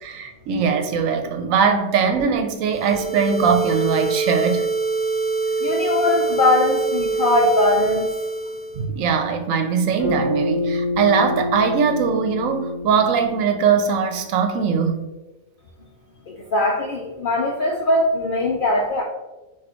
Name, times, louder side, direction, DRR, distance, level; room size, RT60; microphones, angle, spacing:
voice 1, 0.0-4.7 8.8-15.1, right 6 dB, 75° right, 0.9 m, -21 dB
sound 1, 2.7-8.8, right 4 dB, 40° right, 0.6 m, -24 dB
voice 2, 5.6-8.1 16.3-19.0, left 2 dB, 65° left, 0.5 m, -20 dB
Bass guitar, 10.0-14.4, left 2 dB, 15° left, 1.5 m, -27 dB
5.9 x 2.5 x 2.9 m
omnidirectional pair, 1.4 m